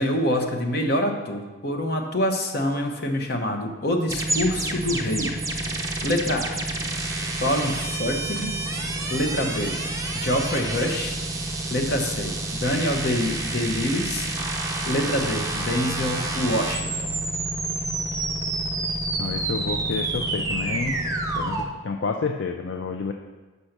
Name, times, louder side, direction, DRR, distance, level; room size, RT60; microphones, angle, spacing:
voice 1, 0.0-5.3 6.0-6.5 7.4-8.5 9.1-9.8 10.1-11.2 11.7-14.6 14.9-17.1, left 1 dB, 55° left, 2 dB, 1.0 m, -26 dB
sound 1, 4.1-21.6, right 2 dB, 15° right, 0.6 m, -28 dB
voice 2, 19.2-21.0 21.4-23.1, left 4 dB, 70° left, 4 dB, 0.4 m, -29 dB
6.6 x 5.4 x 5.9 m, 1.2 s
head